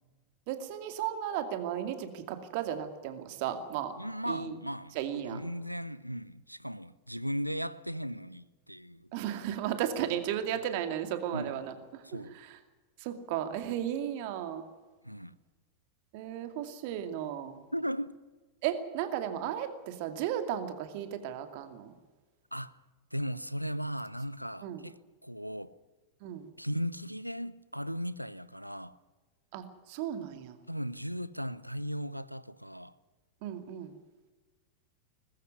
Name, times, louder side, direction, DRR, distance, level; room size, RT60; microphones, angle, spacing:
voice 1, 0.5-3.9 4.3-4.6 4.9-5.4 9.1-12.6 13.0-14.6 16.1-17.5 18.6-21.9 24.6-24.8 26.2-26.5 29.5-30.6 33.4-34.0, right 10 dB, 45° right, 2.4 m, -35 dB
voice 2, 4.0-9.1 11.3-11.6 12.0-12.3 15.0-15.3 17.7-18.2 22.5-22.8 23.1-25.8 26.6-29.0 30.7-32.9, equal, 90° right, 0.6 m, -37 dB
20.0 x 15.0 x 9.6 m
figure-of-eight pair, 90°, 0 cm